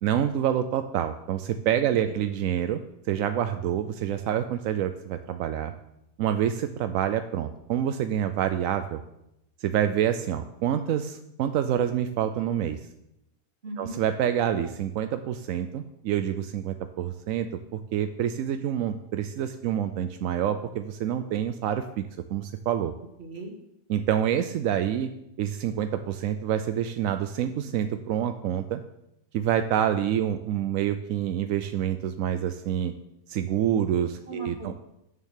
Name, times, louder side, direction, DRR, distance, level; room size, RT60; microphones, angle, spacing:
voice 1, 0.0-2.8 3.1-5.7 6.2-9.0 9.6-12.8 13.8-17.5 17.7-22.9 23.9-25.1 25.4-28.8 29.3-32.9 33.3-34.7, right 10 dB, 70° right, 9 dB, 0.8 m, -27 dB
voice 2, 1.8-2.2 13.6-14.0 23.2-23.6 34.3-34.8, right 2 dB, 40° right, 2 dB, 1.9 m, -39 dB
9.2 x 6.7 x 6.6 m, 0.83 s
omnidirectional pair, 1.8 m